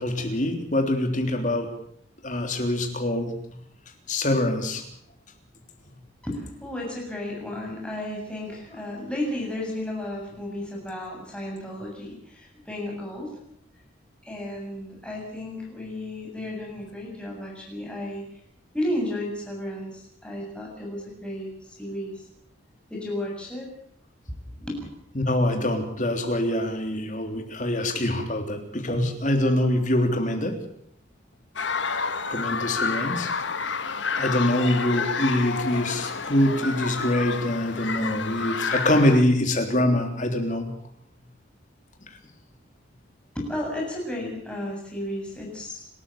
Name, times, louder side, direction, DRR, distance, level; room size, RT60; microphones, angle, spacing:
voice 1, 0.0-1.7 2.2-3.3 4.1-4.8 25.2-30.6 32.3-33.3 34.2-40.7, left 1 dB, 40° left, 4 dB, 3.5 m, -24 dB
voice 2, 6.2-13.4 14.2-18.4 18.7-22.3 22.9-23.7 24.5-24.8 43.3-45.9, left 1 dB, 5° left, -2 dB, 7.5 m, -33 dB
sound 1, 31.6-39.2, left 5 dB, 65° left, 1.4 m, -29 dB
29.5 x 13.5 x 7.4 m, 0.67 s
head